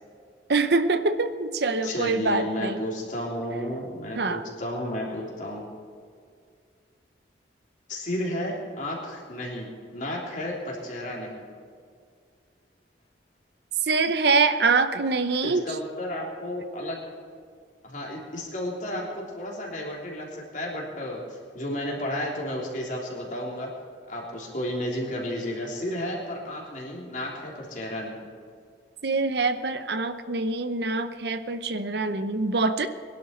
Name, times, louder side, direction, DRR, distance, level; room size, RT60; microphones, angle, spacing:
voice 1, 0.5-2.8 4.2-4.4 13.8-15.6 29.0-32.9, right 3 dB, 65° right, 10 dB, 0.8 m, -24 dB
voice 2, 1.8-5.7 7.9-11.4 15.4-17.0 17.8-23.7 24.1-28.2, left 1 dB, 45° left, -2 dB, 3.4 m, -32 dB
22.0 x 12.0 x 4.5 m, 2.2 s
head